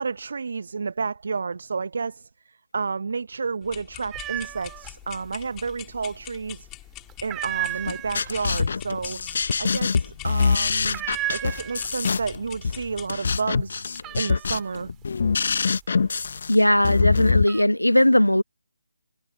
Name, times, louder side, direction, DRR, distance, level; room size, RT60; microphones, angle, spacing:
voice 1, 0.0-6.7 7.2-11.0 11.3-13.9 14.1-14.9, right 4 dB, 50° right, 1.0 m, -31 dB
sound 1, 3.6-13.1, left 19 dB, 15° left, 4.5 m, -44 dB
sound 2, 4.1-4.9 5.2-6.0 6.4-6.7 7.1-12.2 12.5-13.1 13.4-16.5 17.0-17.6, right 16 dB, 10° right, 2.3 m, -34 dB
sound 3, 7.9-17.4, left 5 dB, 45° left, 1.2 m, -24 dB
voice 2, 16.5-18.4, left 1 dB, 85° left, 1.2 m, -18 dB
figure-of-eight pair, 150°, 0 cm